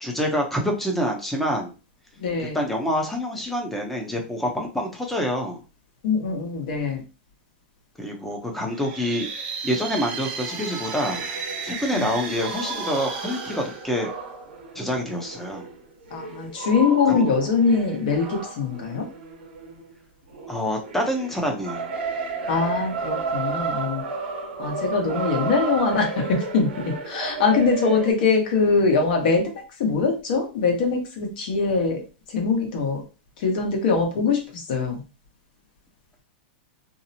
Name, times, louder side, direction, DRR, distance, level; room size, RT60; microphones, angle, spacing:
voice 1, 0.0-1.7 2.4-5.6 8.0-9.3 9.6-11.3 11.6-14.1 14.7-15.7 17.1-17.2 20.5-21.9, equal, 5° left, 1 dB, 0.6 m, -27 dB
voice 2, 2.2-2.6 6.0-7.0 11.9-12.1 16.1-19.0 22.5-24.0 24.6-29.4 29.8-32.0 32.3-33.0 33.4-35.0, left 4 dB, 60° left, 2 dB, 1.0 m, -23 dB
sound 1, 8.6-14.6, right 5 dB, 45° right, 0.8 m, -34 dB
sound 2, 11.1-19.9 20.3-28.1, right 3 dB, 80° right, 0.8 m, -33 dB
2.7 x 2.0 x 2.7 m, 0.32 s
hypercardioid pair, 135°, 6 cm